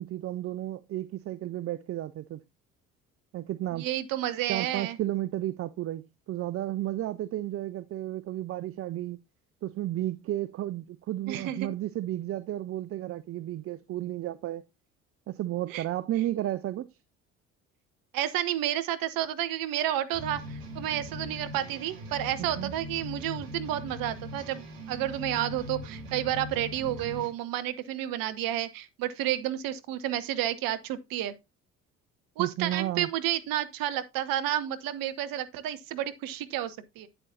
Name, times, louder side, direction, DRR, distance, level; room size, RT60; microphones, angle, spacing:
voice 1, 0.0-2.4 3.3-3.9 4.5-9.2 9.6-14.6 15.3-16.9 22.4-22.7 32.4-33.1, right 14 dB, 35° right, 0.5 m, -33 dB
voice 2, 3.7-5.0 11.3-11.7 15.7-15.8 18.1-31.3 32.4-37.1, right 12 dB, 55° right, 1.0 m, -31 dB
sound 1, 20.1-27.3, left 1 dB, 75° right, 1.9 m, -40 dB
8.8 x 7.9 x 2.7 m
figure-of-eight pair, 50°, 40 cm